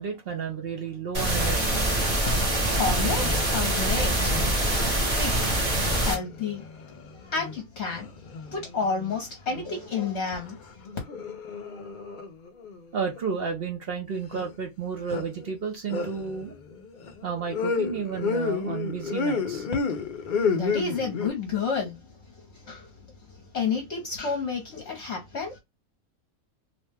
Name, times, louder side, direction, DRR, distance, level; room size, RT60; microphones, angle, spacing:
voice 1, 0.0-1.8 12.9-16.6 17.2-19.7, right 6 dB, 55° right, 0.8 m, -32 dB
sound 1, 1.1-6.1, right 1 dB, 30° right, 0.9 m, -24 dB
voice 2, 2.5-4.2 4.7-6.7 7.2-8.1 8.5-10.6 20.5-22.0 22.7-22.9 23.5-25.6, left 5 dB, 55° left, 1.0 m, -30 dB
sound 2, 2.7-3.5 3.8-4.7 5.5-7.6 7.9-9.1 9.5-10.5 10.8-13.2 14.3-14.5 15.1-15.5 15.9-21.3, left 4 dB, 75° left, 0.4 m, -32 dB
2.9 x 2.1 x 3.3 m
omnidirectional pair, 1.4 m